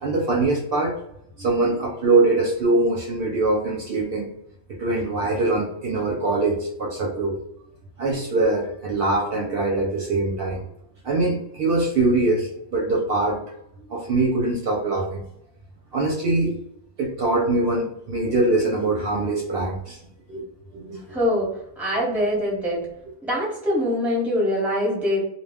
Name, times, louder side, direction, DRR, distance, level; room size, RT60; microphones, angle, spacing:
voice 1, 0.0-1.0 1.4-4.3 4.8-7.4 8.0-10.7 11.0-13.4 13.8-15.2 15.9-16.5 17.0-20.0 20.3-20.4 20.7-21.0, right 2 dB, 60° right, -2 dB, 0.7 m, -23 dB
voice 2, 21.1-21.5 21.8-22.8 23.2-25.2, left 1 dB, ahead, -5 dB, 0.8 m, -23 dB
2.2 x 2.2 x 3.4 m, 0.75 s
omnidirectional pair, 1.2 m